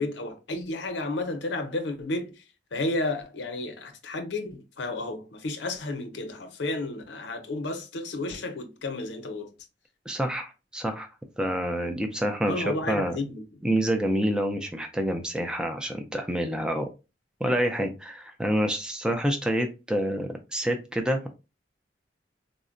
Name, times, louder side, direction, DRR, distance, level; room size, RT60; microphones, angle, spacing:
voice 1, 0.0-2.3 2.7-9.5 12.4-13.4, left 2 dB, 80° left, 0.6 m, -32 dB
voice 2, 10.1-11.1 11.4-13.2 13.6-16.9 17.4-21.3, equal, 5° right, 0.4 m, -27 dB
3.7 x 2.1 x 2.5 m
head